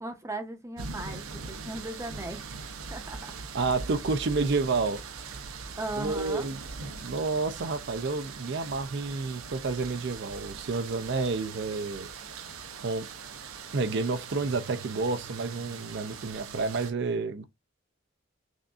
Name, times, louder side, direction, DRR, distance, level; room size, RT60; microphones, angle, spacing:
voice 1, 0.0-2.6 2.9-3.3 5.8-6.5, right 2 dB, 15° right, 0.7 m, -37 dB
sound 1, 0.8-16.9, right 5 dB, 85° right, 0.7 m, -41 dB
voice 2, 3.5-5.0 6.0-6.6 7.0-12.1 12.8-13.1 13.7-17.4, right 3 dB, 55° right, 0.5 m, -30 dB
6.1 x 2.6 x 2.4 m
head